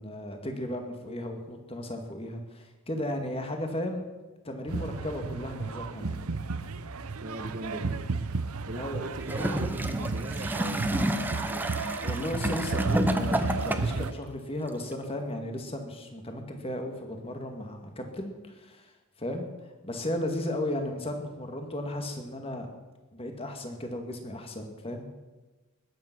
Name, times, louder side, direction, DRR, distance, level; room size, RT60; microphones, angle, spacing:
voice 1, 0.0-4.0 4.4-6.2 8.7-9.0 12.0-18.9 19.2-19.5 19.8-22.7 23.1-25.1, left 1 dB, 25° left, 4 dB, 2.1 m, -35 dB
sound 1, 4.7-14.1, right 4 dB, 80° right, 0.7 m, -33 dB
voice 2, 7.2-7.9 8.6-11.7, right 1 dB, 40° right, 8 dB, 1.3 m, -40 dB
Gurgling / Toilet flush, 9.2-14.1 14.9-15.0, equal, 10° right, 0.8 m, -30 dB
20.5 x 9.0 x 6.1 m, 1.2 s
head